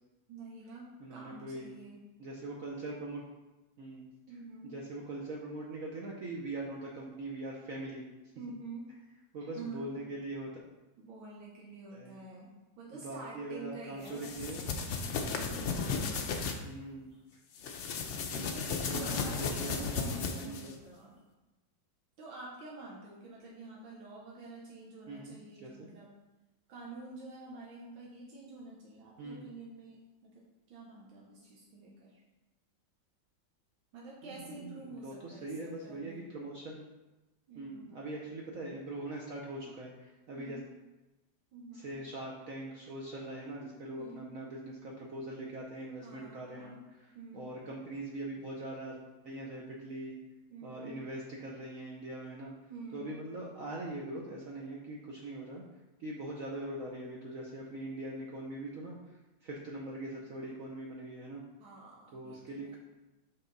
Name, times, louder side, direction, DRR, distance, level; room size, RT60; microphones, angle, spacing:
voice 1, 0.3-2.0 4.3-4.7 8.3-8.9 9.4-9.8 11.0-14.3 15.4-16.4 17.1-17.2 18.5-21.2 22.2-26.1 26.7-32.2 33.9-36.2 37.5-37.9 40.3-40.6 41.5-42.0 44.0-44.4 46.0-46.8 47.1-47.5 50.5-51.0 52.7-53.1 61.6-62.8, right 3 dB, 90° right, -4 dB, 1.7 m, -48 dB
voice 2, 1.0-1.7 2.2-3.2 3.8-4.1 4.6-8.0 9.3-10.5 11.9-12.2 12.9-14.7 15.1-15.4 16.6-17.4 18.1-20.7 25.1-25.9 29.2-29.5 34.2-36.8 37.6-40.6 41.7-49.0 49.2-50.2 50.6-55.6 56.0-59.2 59.4-61.4 62.1-62.8, right 2 dB, 60° right, -2 dB, 1.0 m, -42 dB
sound 1, 14.1-16.6 17.6-20.7, left 5 dB, 85° left, 0.6 m, -35 dB
5.9 x 5.7 x 3.9 m, 1.1 s
omnidirectional pair, 2.1 m